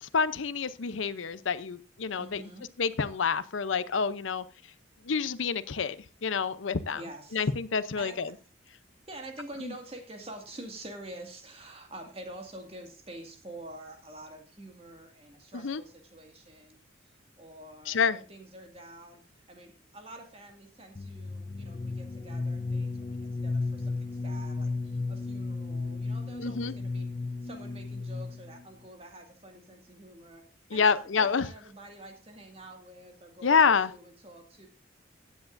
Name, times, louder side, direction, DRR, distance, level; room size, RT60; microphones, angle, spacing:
voice 1, 0.0-2.4 2.8-4.4 5.0-6.0 6.2-7.0 7.3-8.3 9.6-9.7 15.6-15.8 17.9-18.2 26.4-26.7 30.7-31.5 33.4-33.9, left 5 dB, 85° left, 15 dB, 0.7 m, -27 dB
voice 2, 2.2-2.7 6.9-7.5 8.0-8.2 9.1-16.8 17.4-27.1 27.4-30.4 30.7-34.7, right 1 dB, 30° right, 4 dB, 2.1 m, -47 dB
sound 1, 21.0-28.6, left 3 dB, 30° left, 0.5 m, -34 dB
16.0 x 9.3 x 2.6 m, 0.35 s
head